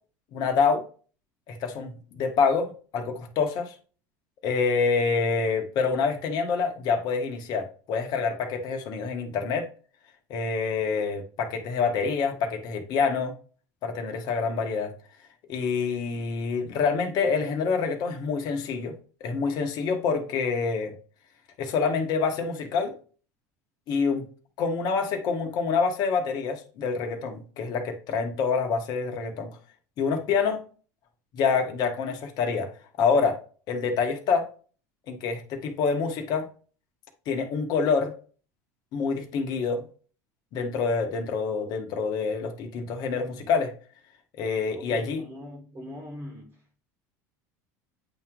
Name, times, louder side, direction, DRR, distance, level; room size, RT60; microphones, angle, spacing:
voice 1, 0.3-0.8 1.5-3.7 4.4-9.7 10.3-13.3 13.8-14.9 15.5-18.9 19.2-20.9 21.6-22.9 23.9-24.2 24.6-29.5 30.0-30.6 31.3-32.7 33.0-33.4 33.7-34.5 35.1-36.5 37.3-38.1 38.9-39.8 40.5-43.7 44.3-45.2, left 5 dB, 55° left, 1.3 m, -26 dB
voice 2, 44.7-46.6, left 1 dB, 25° right, 1.4 m, -41 dB
8.5 x 3.0 x 3.7 m
supercardioid pair, 115°, 8 cm